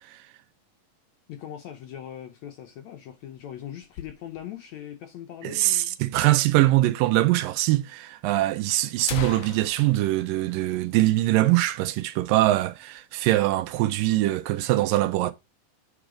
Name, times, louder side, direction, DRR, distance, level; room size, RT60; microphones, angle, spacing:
voice 1, 1.3-6.0, left 10 dB, 75° left, 1.7 m, -40 dB
sound 1, 2.9-4.7 5.0-5.1 5.3-5.4 6.1-6.2 7.1-7.2 7.6-7.7 8.4-8.5 8.8-11.4 11.8-11.9 12.3-12.6 13.0-13.6, left 10 dB, 90° left, 1.4 m, -40 dB
voice 2, 5.4-15.3, right 16 dB, 80° right, 2.2 m, -23 dB
8.9 x 4.9 x 5.0 m
omnidirectional pair, 4.1 m